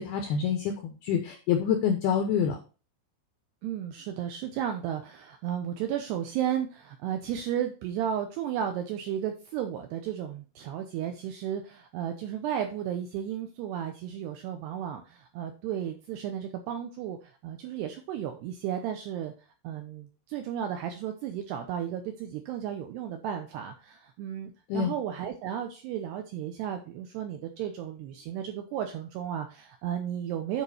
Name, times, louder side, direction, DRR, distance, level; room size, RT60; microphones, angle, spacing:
voice 1, 0.0-2.6 24.7-24.9, left 7 dB, 85° left, 5 dB, 2.2 m, -27 dB
voice 2, 3.6-19.3 19.6-30.6, right 9 dB, 85° right, 5 dB, 2.4 m, -34 dB
9.4 x 5.0 x 4.2 m, 0.34 s
omnidirectional pair, 5.6 m